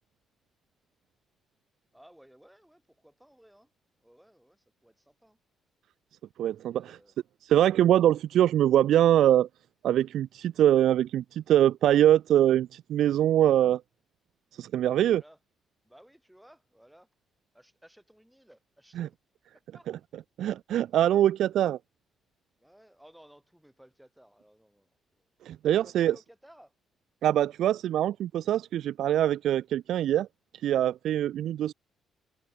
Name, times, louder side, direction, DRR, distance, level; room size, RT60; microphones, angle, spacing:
voice 1, 1.9-3.7 4.0-5.4 6.6-7.1 14.9-15.4 15.8-17.1 17.5-19.1 19.5-19.9 22.6-25.3 25.7-26.7, equal, 5° right, 5.7 m, -57 dB
voice 2, 6.4-7.0 7.4-9.5 9.8-13.8 14.5-15.2 19.0-19.1 20.4-21.8 25.4-26.1 27.2-30.3 30.6-31.7, right 11 dB, 75° right, 0.5 m, -23 dB
cardioid pair, 90°, 0 cm